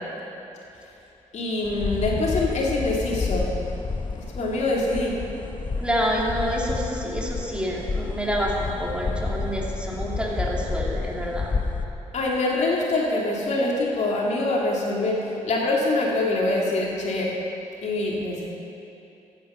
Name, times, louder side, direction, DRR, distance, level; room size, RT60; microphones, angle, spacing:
voice 1, 1.3-3.5 4.3-5.2 12.1-17.3 17.8-18.4, left 2 dB, 60° left, -3 dB, 2.5 m, -24 dB
sound 1, 1.6-11.9, left 4 dB, 35° left, 1.0 m, -30 dB
voice 2, 5.8-11.5, equal, 10° right, -3 dB, 3.0 m, -28 dB
14.5 x 9.3 x 5.7 m, 2.9 s
supercardioid pair, 55°, 13 cm